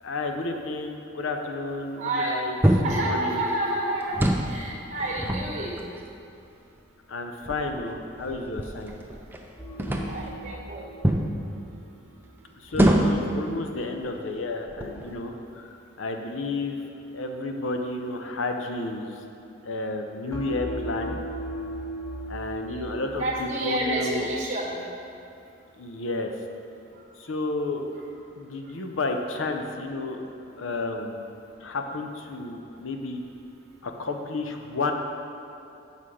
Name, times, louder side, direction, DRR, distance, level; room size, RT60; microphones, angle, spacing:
voice 1, 0.0-2.5 3.0-3.5 7.1-8.9 12.6-16.8 17.1-19.1 19.6-21.2 22.3-24.3 25.8-26.3 27.2-27.8 28.4-30.2 30.6-31.2 31.6-33.2 33.8-34.9, left 2 dB, 85° left, 4 dB, 0.6 m, -31 dB
voice 2, 2.0-2.4 2.8-5.8 9.1-9.2 10.1-10.9 22.7-22.9 23.2-24.8 26.9-27.1 28.6-28.8, right 1 dB, 40° right, -2 dB, 1.2 m, -29 dB
sound 1, 2.6-3.0 4.0-4.5 5.0-6.1 6.8-6.9 7.4-9.4 9.8-10.3 11.0-11.3 12.7-13.3 14.0-14.2 14.7-15.2, right 1 dB, 10° right, 0.4 m, -25 dB
sound 2, 9.6-12.7 20.3-24.3, right 1 dB, 15° left, 1.3 m, -38 dB
7.6 x 5.6 x 4.9 m, 2.7 s
head